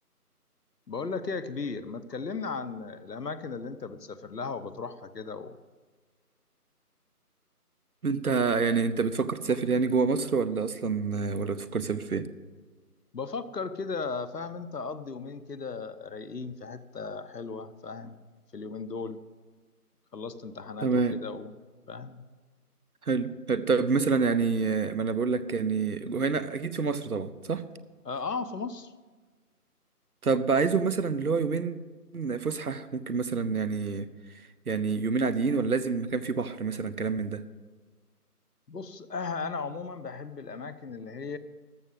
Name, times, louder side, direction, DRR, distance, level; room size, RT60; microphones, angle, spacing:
voice 1, 0.9-5.6 13.1-18.2 18.5-19.2 20.1-20.9 21.2-21.5 21.9-22.2 28.0-28.9 38.7-41.4, left 4 dB, 90° left, 13 dB, 1.1 m, -36 dB
voice 2, 8.0-12.3 20.8-21.2 23.0-27.6 30.2-31.8 32.1-34.1 34.7-37.4, right 4 dB, 70° right, 14 dB, 0.9 m, -27 dB
13.5 x 6.3 x 7.9 m, 1.4 s
figure-of-eight pair, 175°, 47 cm